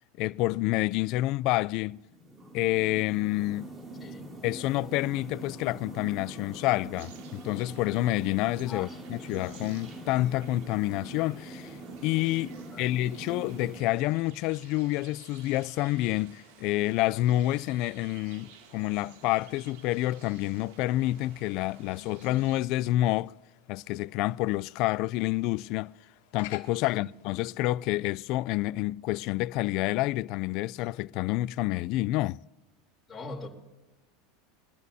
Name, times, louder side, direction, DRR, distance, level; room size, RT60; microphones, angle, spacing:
voice 1, 0.2-2.0 2.5-3.7 4.4-11.8 12.0-23.3 23.7-25.9 26.3-32.4, left 17 dB, 55° left, 0.3 m, -28 dB
sound 1, 2.0-13.8, right 2 dB, 20° right, 2.6 m, -43 dB
sound 2, 7.0-22.6, right 7 dB, 75° right, 2.4 m, -55 dB
voice 2, 8.7-9.0 12.5-12.9 26.8-27.0 33.1-33.5, left 3 dB, 15° left, 3.4 m, -42 dB
sound 3, 21.0-27.4, left 15 dB, 70° left, 1.7 m, -53 dB
24.0 x 12.5 x 2.8 m
supercardioid pair, 135°, 0 cm